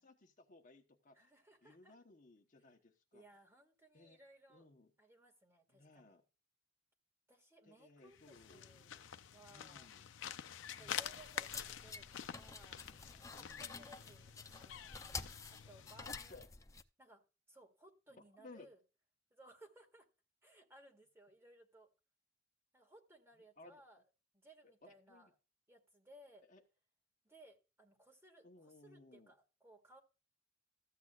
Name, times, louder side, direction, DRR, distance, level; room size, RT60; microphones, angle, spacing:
voice 1, 0.0-1.3 1.6-3.2 3.9-4.2 4.5-4.9 5.7-6.2 7.6-8.8 9.5-10.1 10.7-11.0 13.4-13.8 16.0-16.5 18.1-18.7 23.6-23.8 24.8-25.3 26.5-26.6 28.4-29.3, left 2 dB, 45° left, 1.0 m, -60 dB
voice 2, 1.1-2.0 3.1-4.7 5.0-6.2 7.3-9.9 10.7-12.9 13.1-15.0 15.5-16.5 17.0-17.2 17.5-18.8 19.3-20.1 20.4-21.9 22.7-24.0 24.3-25.3 25.7-26.5 27.2-30.0, right 1 dB, 15° right, 1.9 m, -62 dB
sound 1, 8.1-16.4, left 9 dB, 80° left, 0.5 m, -48 dB
sound 2, 10.9-16.8, left 4 dB, 15° left, 0.5 m, -50 dB
14.5 x 8.1 x 2.4 m
head